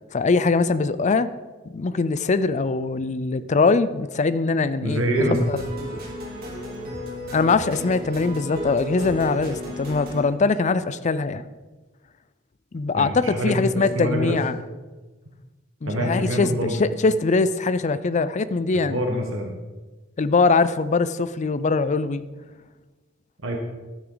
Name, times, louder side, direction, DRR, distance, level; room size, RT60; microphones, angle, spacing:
voice 1, 0.1-1.3 1.7-5.9 7.3-11.4 12.7-14.6 15.8-19.0 20.2-22.2, left 4 dB, 35° left, 14 dB, 0.4 m, -22 dB
voice 2, 4.8-5.4 12.9-14.4 15.9-16.8 18.7-19.5 23.4-23.6, right 1 dB, 70° right, 1 dB, 1.5 m, -25 dB
sound 1, 5.1-10.2, equal, 50° right, 2.7 m, -34 dB
12.0 x 9.4 x 4.0 m, 1.3 s
head